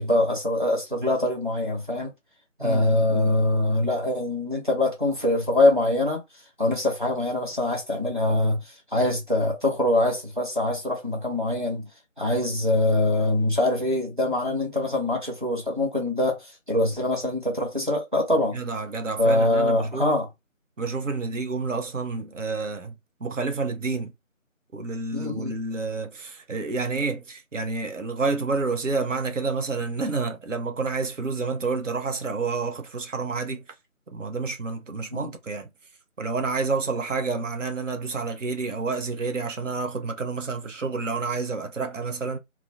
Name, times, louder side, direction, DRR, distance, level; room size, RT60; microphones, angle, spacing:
voice 1, 0.0-2.1 2.6-6.2 6.6-11.8 12.2-18.6 19.2-20.3 25.1-25.5 35.1-35.3, left 1 dB, 40° right, 0.8 m, -24 dB
voice 2, 2.6-3.4 18.5-20.1 20.8-22.9 23.2-24.1 24.7-33.6 34.1-35.7 36.2-42.4, right 4 dB, 65° right, 0.6 m, -29 dB
2.4 x 2.0 x 2.5 m
figure-of-eight pair, 175°, 41 cm